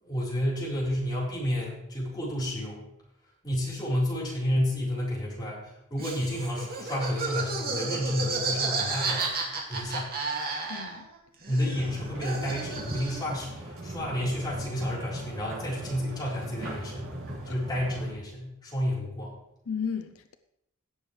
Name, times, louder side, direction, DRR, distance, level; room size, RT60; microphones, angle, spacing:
voice 1, 0.0-2.8 3.4-9.3 9.7-10.1 11.5-17.0 17.4-19.4, equal, 20° left, 4.2 m, -30 dB
Laughter, 6.0-11.2 11.4-13.4, right 3 dB, 45° right, 2.3 m, -32 dB
voice 2, 10.7-11.1 17.5-17.6 19.7-20.4, left 6 dB, 85° left, 0.6 m, -34 dB
sound 1, 11.7-18.1, right 1 dB, 70° right, 4.5 m, -39 dB
17.0 x 7.2 x 3.3 m
head